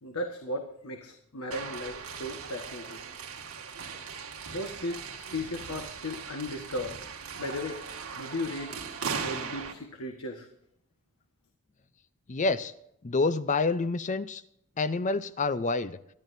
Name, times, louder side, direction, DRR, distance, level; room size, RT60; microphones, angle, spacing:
voice 1, 0.0-3.0 3.8-4.2 4.5-7.0 7.4-7.8 8.2-8.7 9.2-10.5, left 1 dB, 70° left, 1.5 m, -36 dB
sound 1, 1.5-9.7, right 6 dB, 75° right, 2.0 m, -39 dB
voice 2, 12.3-12.7 13.0-14.4 14.8-16.0, left 3 dB, 35° left, 0.5 m, -27 dB
24.5 x 12.0 x 2.7 m
head